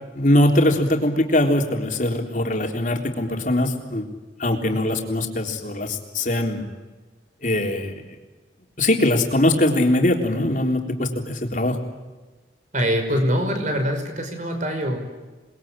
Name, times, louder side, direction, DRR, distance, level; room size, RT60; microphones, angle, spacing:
voice 1, 0.2-4.0 4.4-6.7 7.4-7.9 8.8-11.8, left 1 dB, 45° left, 2 dB, 3.7 m, -21 dB
voice 2, 12.7-15.0, equal, 45° right, 5 dB, 5.6 m, -24 dB
28.5 x 21.5 x 9.0 m, 1.3 s
head